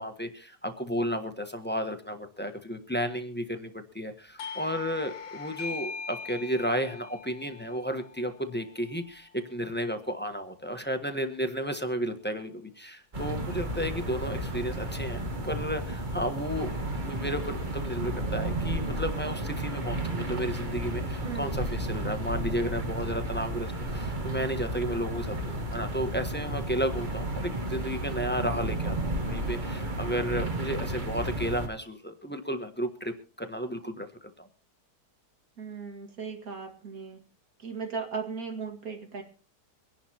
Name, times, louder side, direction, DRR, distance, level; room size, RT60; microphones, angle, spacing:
voice 1, 0.0-16.7 17.0-34.5, equal, 5° left, 6 dB, 1.1 m, -33 dB
Doorbell, 4.4-9.7, left 5 dB, 55° left, 1.2 m, -42 dB
sound 1, 13.1-31.7, right 1 dB, 30° right, 1.5 m, -32 dB
voice 2, 21.2-21.6 35.6-37.2 37.6-39.2, right 5 dB, 60° right, 3 dB, 2.5 m, -37 dB
24.5 x 11.0 x 2.9 m, 0.39 s
omnidirectional pair, 1.7 m